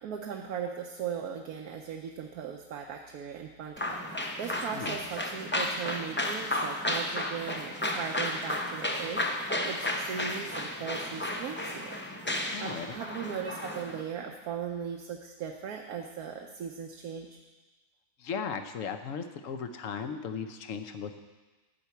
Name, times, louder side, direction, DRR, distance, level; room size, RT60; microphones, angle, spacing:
voice 1, 0.0-11.9 12.6-17.4, right 7 dB, 80° right, 2 dB, 1.3 m, -38 dB
sound 1, 3.8-14.0, left 1 dB, 20° left, 0.3 m, -33 dB
voice 2, 12.5-13.0 18.2-21.2, left 6 dB, 60° left, 8 dB, 1.1 m, -37 dB
12.0 x 4.5 x 8.2 m, 1.2 s
omnidirectional pair, 1.6 m